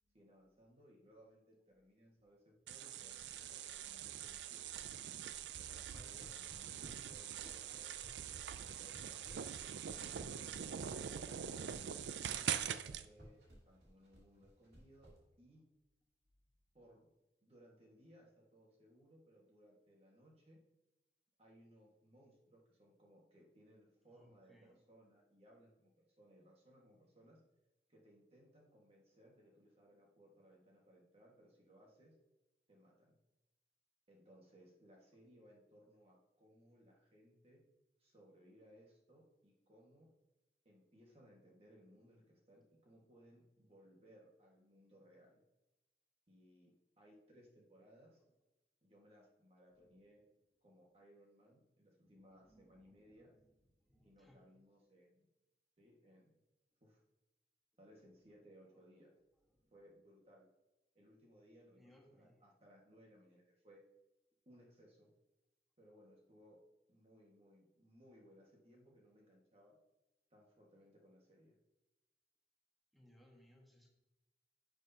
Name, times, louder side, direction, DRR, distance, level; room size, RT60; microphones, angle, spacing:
voice 1, 0.1-4.9 5.6-8.0 8.5-11.4 12.1-15.6 16.7-17.1 17.4-20.6 21.4-27.4 27.9-32.2 32.7-33.2 34.1-37.6 38.0-40.1 40.6-45.4 46.3-48.2 48.8-50.2 50.6-53.3 54.0-55.3 55.8-56.3 56.8-57.0 57.8-59.1 59.7-60.5 60.9-63.8 64.4-65.1 65.8-66.6 66.9-69.8 70.3-71.5, equal, 35° right, -2 dB, 1.6 m, -65 dB
sound 1, 2.7-13.1, right 9 dB, 80° right, 0.4 m, -44 dB
sound 2, 5.7-15.2, equal, 65° right, 2.7 m, -58 dB
voice 2, 24.1-24.8 49.8-49.9 52.4-53.4 53.8-54.5 59.6-59.7 61.8-62.4 72.9-73.9, equal, ahead, -1 dB, 1.4 m, -67 dB
11.0 x 6.5 x 2.8 m, 1.0 s
head